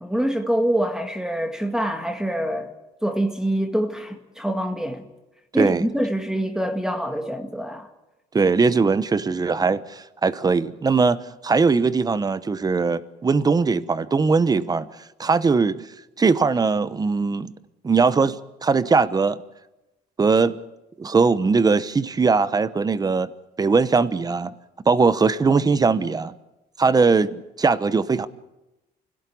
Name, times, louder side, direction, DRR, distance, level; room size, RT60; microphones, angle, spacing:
voice 1, 0.0-2.7 3.0-5.1 5.5-7.9, right 1 dB, 5° right, 1.9 m, -25 dB
voice 2, 8.3-14.9 15.2-15.8 16.2-17.5 17.8-19.4 20.2-20.6 21.0-23.3 23.6-24.5 24.9-26.3 26.8-28.3, right 4 dB, 20° right, 1.0 m, -20 dB
25.0 x 17.0 x 8.6 m
cardioid pair, 110°, 17 cm